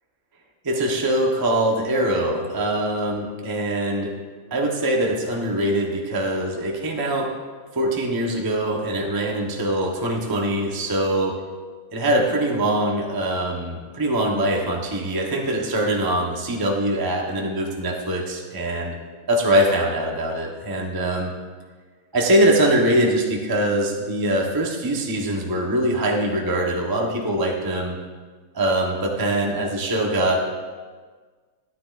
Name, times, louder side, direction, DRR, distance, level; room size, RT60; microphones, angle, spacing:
voice 1, 0.6-4.1 4.5-7.3 7.7-11.4 11.9-19.0 19.3-21.3 22.1-28.0 28.5-30.4, right 1 dB, 30° right, -1 dB, 0.4 m, -23 dB
13.0 x 9.7 x 2.5 m, 1.5 s
omnidirectional pair, 2.4 m